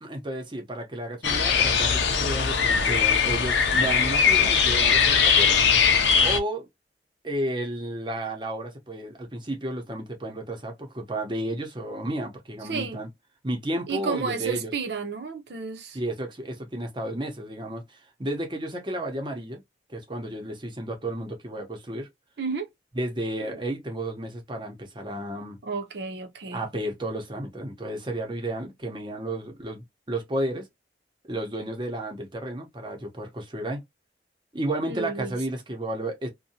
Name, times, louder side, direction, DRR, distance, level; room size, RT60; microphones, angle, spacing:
voice 1, 0.0-5.6 6.2-6.7 7.2-13.1 13.4-14.7 15.9-19.6 19.9-22.1 22.9-25.6 26.5-30.7 31.3-33.8 34.5-36.3, right 1 dB, 25° right, 0.8 m, -32 dB
sound 1, 1.2-6.4, left 6 dB, 90° left, 0.5 m, -21 dB
voice 2, 12.7-13.0 13.9-16.0 22.4-22.7 25.6-26.6 34.8-35.4, right 5 dB, 75° right, 0.7 m, -32 dB
2.7 x 2.2 x 2.7 m
head